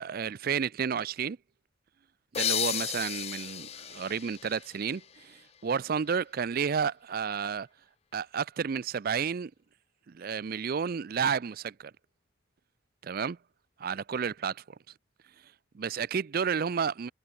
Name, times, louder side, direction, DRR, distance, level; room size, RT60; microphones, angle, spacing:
voice 1, 0.0-1.4 2.3-7.7 8.1-9.5 10.1-11.9 13.0-13.4 13.8-14.6 15.7-17.1, right 6 dB, 45° right, 0.4 m, -31 dB
sound 1, 2.3-5.8, left 10 dB, 30° left, 0.4 m, -34 dB
head